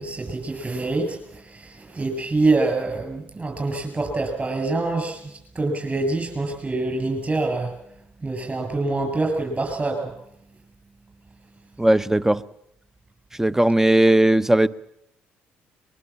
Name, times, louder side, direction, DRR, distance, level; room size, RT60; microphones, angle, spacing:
voice 1, 0.0-7.9 8.2-10.2, right 3 dB, 30° right, 7.4 m, -25 dB
voice 2, 11.8-12.4 13.4-14.7, right 1 dB, 10° right, 0.9 m, -17 dB
22.5 x 21.5 x 7.5 m
hypercardioid pair, 55°, 5 cm